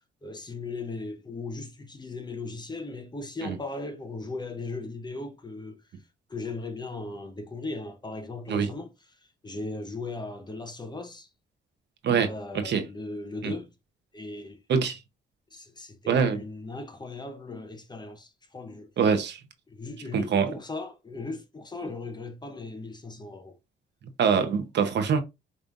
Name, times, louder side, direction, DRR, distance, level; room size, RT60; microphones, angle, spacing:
voice 1, 0.2-5.8 6.3-8.9 9.4-11.3 12.1-13.7 14.1-14.6 15.5-18.9 19.7-23.6, left 3 dB, 20° left, 0.9 m, -37 dB
voice 2, 16.1-16.4 19.0-19.4 20.1-20.5 24.2-25.2, right 6 dB, 60° right, 0.9 m, -24 dB
5.3 x 3.2 x 2.5 m
cardioid pair, 90°, 20 cm